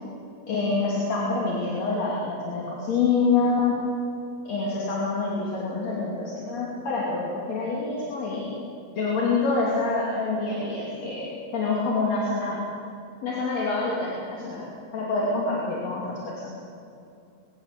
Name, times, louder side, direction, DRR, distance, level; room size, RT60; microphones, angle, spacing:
voice 1, 0.5-3.7 4.4-8.5 9.0-11.3 11.5-12.6 13.2-14.7 14.9-16.5, left 3 dB, 40° left, -4 dB, 3.5 m, -26 dB
22.5 x 16.5 x 8.3 m, 2.6 s
omnidirectional pair, 5.4 m